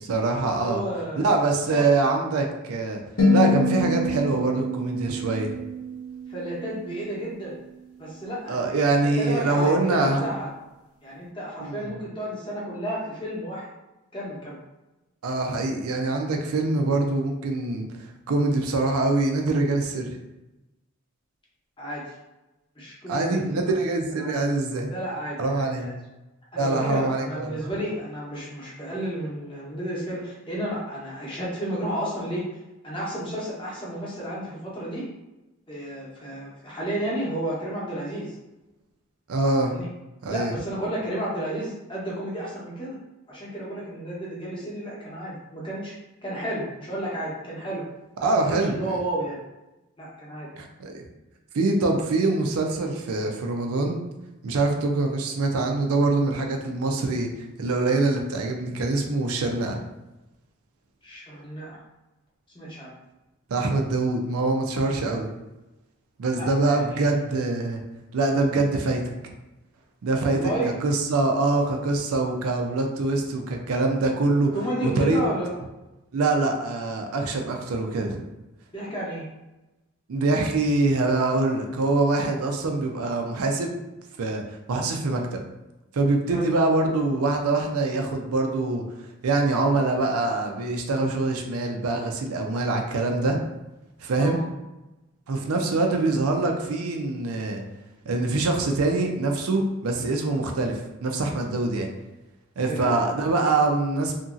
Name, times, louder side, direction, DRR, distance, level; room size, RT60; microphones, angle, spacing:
voice 1, 0.1-0.8 1.2-3.0 3.3-5.5 8.5-10.3 11.6-11.9 15.2-20.2 23.1-24.9 25.4-25.9 26.6-27.7 39.3-39.8 40.2-40.6 48.2-49.0 50.6-51.0 51.5-54.0 54.4-59.8 63.5-65.3 66.2-67.8 68.1-69.1 70.0-74.6 74.8-75.2 76.1-78.2 80.1-83.7 84.2-85.4 85.9-88.8 89.2-93.4 94.0-94.4 95.3-97.6 98.1-101.9 102.6-104.2, right 3 dB, 80° right, 3 dB, 0.5 m, -24 dB
voice 2, 0.6-1.4 1.7-1.9 6.3-7.5 8.0-8.6 8.8-10.5 11.0-13.7 14.1-14.6 21.8-22.1 22.8-23.7 24.2-24.4 24.9-25.9 26.5-32.4 32.8-35.0 35.7-38.3 39.6-39.9 40.3-43.0 43.3-45.9 46.2-47.8 48.2-49.4 50.0-50.5 61.0-61.8 62.5-63.0 66.3-67.1 70.3-70.7 74.5-75.5 78.7-79.2 86.3-86.5 94.2-94.4 102.6-103.0, right 1 dB, 20° left, -6 dB, 0.8 m, -32 dB
sound 1, 3.2-7.5, left 2 dB, 85° left, 0.8 m, -26 dB
2.8 x 2.6 x 2.4 m, 1.0 s
head